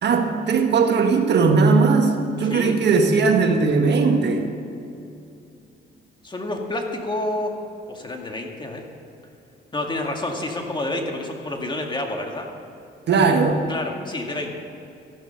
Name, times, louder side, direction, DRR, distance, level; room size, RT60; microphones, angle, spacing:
voice 1, 0.0-4.5 13.1-13.6, right 4 dB, 60° right, 4 dB, 1.5 m, -18 dB
voice 2, 2.5-2.8 6.2-7.5 7.9-8.8 9.7-12.5 13.7-14.5, left 2 dB, 25° left, 2 dB, 2.1 m, -28 dB
13.5 x 11.0 x 5.9 m, 2.7 s
cardioid pair, 90°, 20 cm